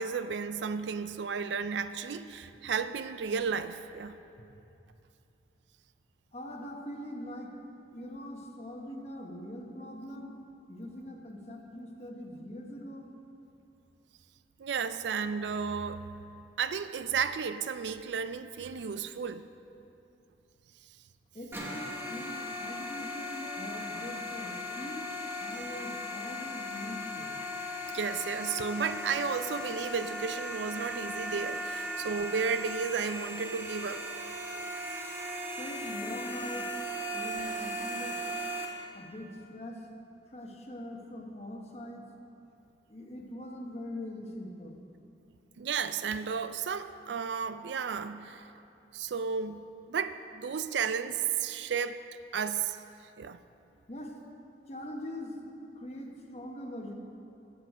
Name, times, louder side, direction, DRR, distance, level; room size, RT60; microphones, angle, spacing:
voice 1, 0.0-4.2 14.6-16.1 16.6-19.5 27.9-34.1 45.6-48.5 48.9-52.0 52.3-52.8 53.2-53.4, right 6 dB, 80° right, 12 dB, 0.4 m, -33 dB
voice 2, 6.3-7.5 7.9-13.1 21.3-25.1 25.4-27.3 35.6-36.7 37.1-38.2 38.9-39.9 40.3-42.1 42.9-44.8 53.9-54.2 54.7-55.4 55.7-56.9, left 1 dB, 35° left, 1 dB, 1.1 m, -42 dB
sound 1, 21.5-38.6, equal, 15° right, 1.0 m, -37 dB
14.5 x 7.9 x 4.8 m, 2.7 s
head